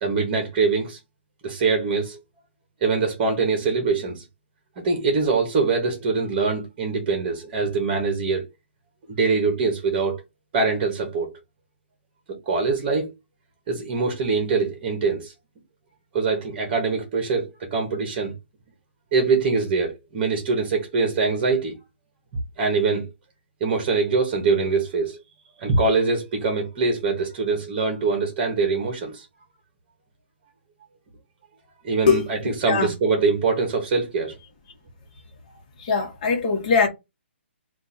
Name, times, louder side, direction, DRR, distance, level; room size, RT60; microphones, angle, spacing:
voice 1, 0.0-1.0 1.4-2.2 2.8-4.2 4.8-8.4 9.1-10.2 10.5-11.3 12.3-13.1 13.7-15.3 16.1-18.3 19.1-21.8 22.6-23.1 23.6-25.2 25.6-29.3 31.8-34.3, right 4 dB, 25° right, 1.2 m, -23 dB
voice 2, 35.8-36.9, left 5 dB, 35° left, 1.4 m, -20 dB
4.4 x 2.5 x 4.2 m
hypercardioid pair, 170°, 7 cm